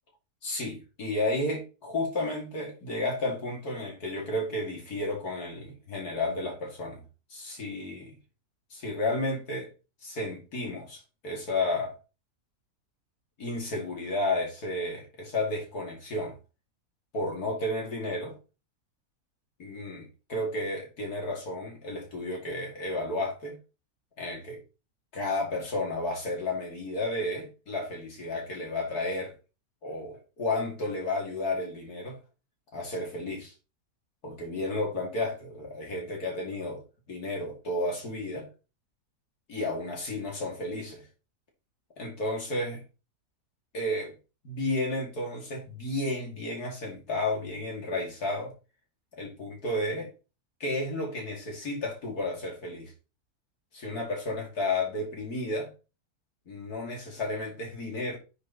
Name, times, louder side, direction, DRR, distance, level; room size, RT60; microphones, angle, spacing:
voice 1, 0.4-7.0 7.3-8.2 8.7-9.7 10.0-12.0 13.4-16.3 17.1-18.4 19.6-23.6 24.2-24.6 25.1-29.3 29.8-32.2 32.7-33.5 34.2-38.5 39.5-41.1 42.0-42.8 43.7-44.1 44.4-48.5 49.2-50.1 50.6-52.9 53.7-55.7 56.5-58.2, left 2 dB, 85° left, 3.3 m, -32 dB
9.4 x 4.4 x 4.2 m
omnidirectional pair, 1.6 m